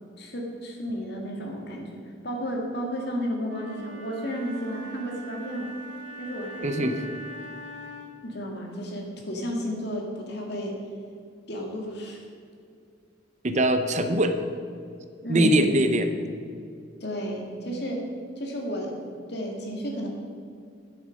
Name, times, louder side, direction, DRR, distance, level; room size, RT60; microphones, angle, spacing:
voice 1, 0.2-2.0 2.2-5.7 6.2-6.9 8.2-10.8 11.5-12.2 15.2-15.8 17.0-18.1 18.4-20.1, equal, 60° left, 0 dB, 2.1 m, -32 dB
Wind instrument woodwind instrument, 3.4-8.3, equal, 75° right, 1.4 m, -42 dB
voice 2, 6.6-7.0 13.4-14.4 15.3-16.1, right 1 dB, 40° right, 8 dB, 0.7 m, -22 dB
10.5 x 7.9 x 6.4 m, 2.4 s
head